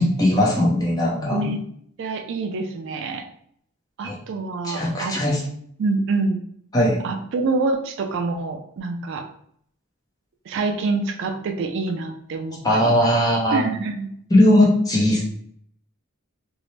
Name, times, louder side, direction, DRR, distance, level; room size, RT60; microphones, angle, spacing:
voice 1, 0.0-1.5 4.0-4.1 4.6-5.4 6.7-7.0 12.6-13.6 14.3-15.2, left 1 dB, 20° left, -4 dB, 0.6 m, -19 dB
voice 2, 1.3-1.6 2.0-3.2 4.0-5.2 5.8-6.4 7.0-9.2 10.5-13.0 13.5-14.1, right 3 dB, 60° right, 5 dB, 0.3 m, -26 dB
2.6 x 2.0 x 3.1 m, 0.67 s
head